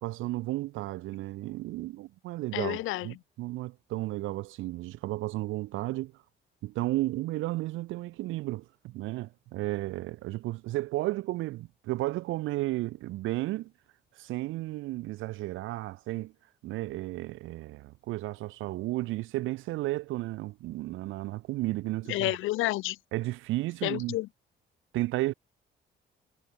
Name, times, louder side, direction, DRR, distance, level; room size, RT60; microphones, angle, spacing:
voice 1, 0.0-2.8 3.0-6.1 6.6-13.7 14.2-16.3 16.6-22.4 23.1-24.2 24.9-25.3, right 18 dB, 85° right, 0.5 m, -33 dB
voice 2, 2.5-3.1 22.1-23.0 23.8-24.3, left 18 dB, 90° left, 0.7 m, -30 dB
cardioid pair, 90°, 20 cm